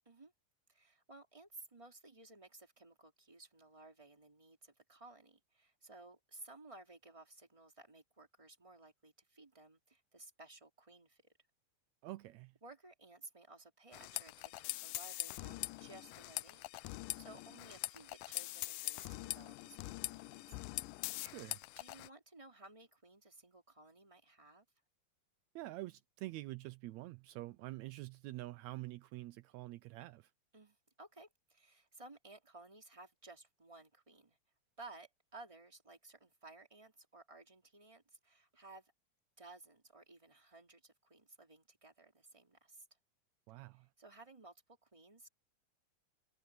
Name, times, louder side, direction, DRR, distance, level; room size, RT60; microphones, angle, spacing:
voice 1, 0.7-11.3 12.6-20.6 21.7-24.6 30.5-34.4 34.8-38.9 39.4-42.9 44.0-45.3, right 2 dB, 10° right, 2.7 m, -57 dB
voice 2, 12.0-12.5 21.2-21.6 25.5-30.3 43.5-43.9, right 18 dB, 85° right, 1.6 m, -47 dB
sound 1, 13.9-22.1, left 20 dB, 85° left, 2.2 m, -43 dB
omnidirectional pair, 3.9 m